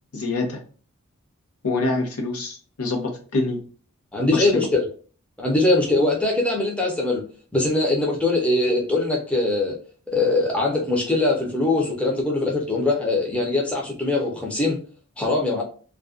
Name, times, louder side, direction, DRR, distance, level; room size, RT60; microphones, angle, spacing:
voice 1, 0.1-0.6 1.6-3.6 4.3-4.7, left 2 dB, 90° left, 3 dB, 0.7 m, -25 dB
voice 2, 4.1-4.8 5.4-7.2 7.5-9.8 10.1-14.8 15.2-15.6, left 2 dB, 5° left, -2 dB, 0.5 m, -22 dB
2.4 x 2.1 x 2.4 m, 0.39 s
head